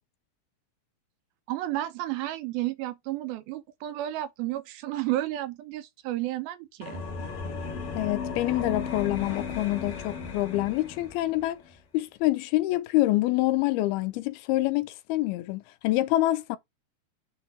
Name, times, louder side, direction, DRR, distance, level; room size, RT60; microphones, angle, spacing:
voice 1, 1.5-7.0, right 15 dB, 80° right, 2.3 m, -32 dB
sound 1, 6.8-11.5, left 5 dB, 50° left, 2.0 m, -35 dB
voice 2, 7.9-11.6 11.9-16.6, left 17 dB, 80° left, 2.5 m, -26 dB
8.0 x 3.2 x 5.7 m
omnidirectional pair, 4.6 m